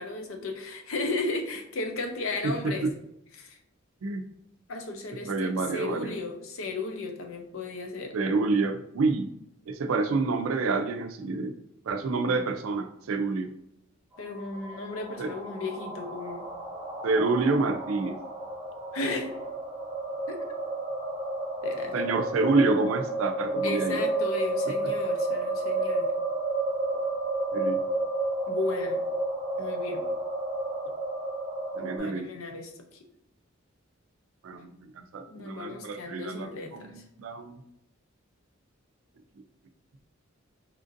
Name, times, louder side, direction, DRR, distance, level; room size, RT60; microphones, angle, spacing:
voice 1, 0.0-2.9 3.3-3.6 4.7-8.2 14.2-16.5 18.9-19.3 20.3-20.4 21.6-21.9 23.6-26.1 28.5-29.0 29.6-30.1 31.8-33.0 35.3-37.0, left 3 dB, 80° left, 4 dB, 0.6 m, -35 dB
voice 2, 5.2-6.2 8.1-9.3 9.7-11.5 11.9-13.5 15.2-15.3 17.0-18.2 21.9-24.1 24.8-24.9 27.5-27.8 31.8-32.3 34.4-37.6, right 3 dB, 85° right, 7 dB, 0.4 m, -28 dB
sound 1, 14.1-32.0, right 2 dB, 25° right, 0.9 m, -31 dB
4.2 x 2.5 x 2.5 m, 0.78 s
head